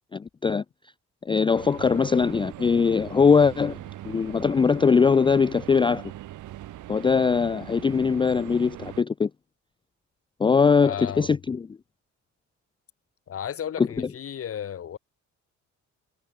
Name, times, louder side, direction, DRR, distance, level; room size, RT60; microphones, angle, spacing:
voice 1, 0.1-0.6 1.2-3.8 4.0-6.1 6.9-9.3 10.4-11.7 13.8-14.1, left 5 dB, 15° left, 0.3 m, -21 dB
sound 1, 1.5-9.0, right 14 dB, 80° right, 2.9 m, -41 dB
voice 2, 10.8-11.4 13.3-15.0, left 9 dB, 50° left, 1.3 m, -34 dB
cardioid pair, 90°, 30 cm